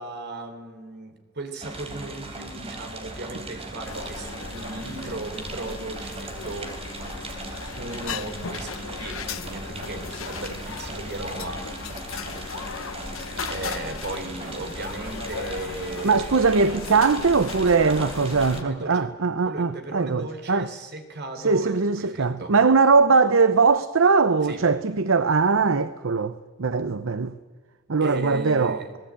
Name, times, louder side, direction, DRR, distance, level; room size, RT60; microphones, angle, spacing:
voice 1, 0.0-6.8 7.7-11.6 12.3-12.4 13.5-16.4 17.8-19.1 19.4-22.5 24.4-24.6 28.0-28.9, right 2 dB, 55° right, 3.5 m, -36 dB
sound 1, 1.6-18.6, right 2 dB, 30° right, 3.6 m, -38 dB
sound 2, 3.8-18.6, left 5 dB, 85° left, 1.1 m, -37 dB
voice 2, 16.0-20.7 21.4-26.3 26.6-27.3 27.9-28.8, right 4 dB, 70° right, 0.8 m, -21 dB
25.5 x 18.5 x 8.8 m
head